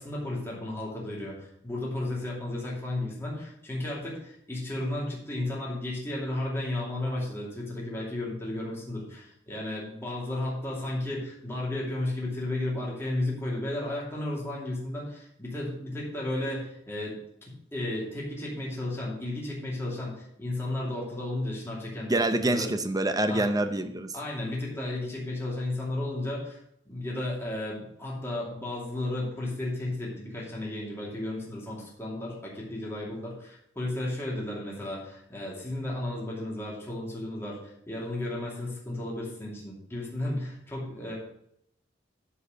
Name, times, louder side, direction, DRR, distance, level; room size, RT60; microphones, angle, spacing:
voice 1, 0.0-17.2 17.7-22.1 22.4-22.7 23.3-23.4 24.1-26.6 26.9-41.1, left 1 dB, 15° left, -5 dB, 2.6 m, -33 dB
voice 2, 22.1-24.1, right 1 dB, 20° right, 8 dB, 0.7 m, -26 dB
9.8 x 4.7 x 6.6 m, 0.74 s
head